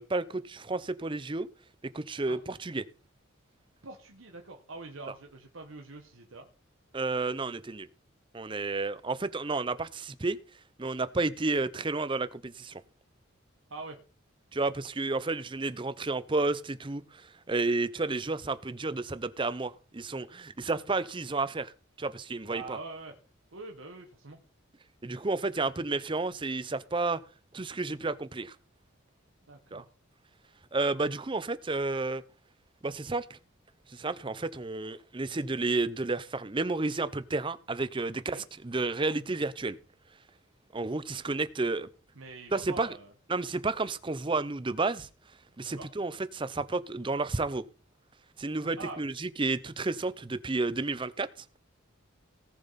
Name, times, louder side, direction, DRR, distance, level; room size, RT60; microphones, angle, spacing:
voice 1, 0.0-1.5 1.9-2.8 6.9-7.9 8.3-10.4 10.8-12.8 14.5-21.7 22.0-22.8 25.0-27.2 27.5-28.5 29.7-29.8 30.7-32.2 32.8-33.4 33.9-39.8 40.7-41.9 42.5-42.9 43.3-45.1 45.6-47.6 48.4-51.3, right 3 dB, 25° right, 0.6 m, -31 dB
voice 2, 3.8-6.5 13.7-14.0 22.5-23.2 23.5-24.4 29.5-29.9 38.3-38.4 42.1-43.1 45.6-45.9 48.8-49.1, right 3 dB, 70° right, 1.3 m, -44 dB
18.5 x 6.8 x 4.1 m
head